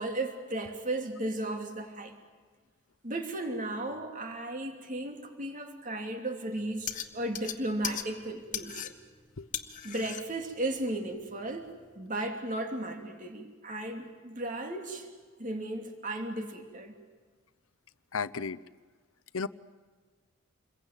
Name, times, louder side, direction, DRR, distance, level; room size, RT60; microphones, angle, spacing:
voice 1, 0.0-2.1 3.0-8.9 9.8-11.7 11.9-15.1 15.4-17.0, right 1 dB, 40° right, 4 dB, 2.9 m, -35 dB
sound 1, 6.6-12.0, left 9 dB, 40° left, 1.5 m, -40 dB
voice 2, 18.1-18.6 19.3-19.5, left 5 dB, 85° left, 16 dB, 0.8 m, -32 dB
28.0 x 22.0 x 9.2 m, 1.5 s
head